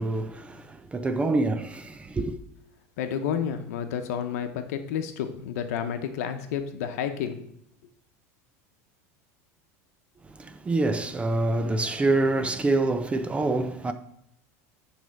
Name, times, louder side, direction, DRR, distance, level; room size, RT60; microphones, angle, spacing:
voice 1, 0.0-2.4 10.2-13.9, right 2 dB, 15° right, 0.4 m, -26 dB
voice 2, 3.0-7.5, left 8 dB, 80° left, 0.8 m, -30 dB
8.8 x 3.3 x 4.6 m
supercardioid pair, 130°, 8 cm